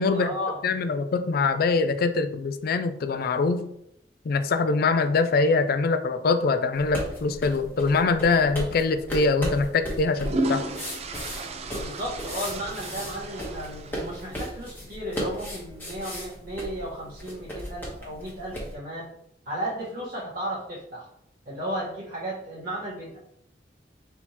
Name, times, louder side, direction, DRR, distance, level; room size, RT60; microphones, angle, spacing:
voice 1, 0.1-0.6 11.7-19.1 19.4-21.1 21.4-23.2, equal, 55° right, -7 dB, 1.4 m, -34 dB
voice 2, 0.6-3.7 4.2-10.6, left 4 dB, 55° left, 9 dB, 0.4 m, -23 dB
sound 1, 6.7-18.7, equal, 10° left, 1.2 m, -36 dB
sound 2, 10.1-14.5, right 2 dB, 35° right, 0.4 m, -33 dB
4.3 x 3.5 x 2.9 m, 0.75 s
head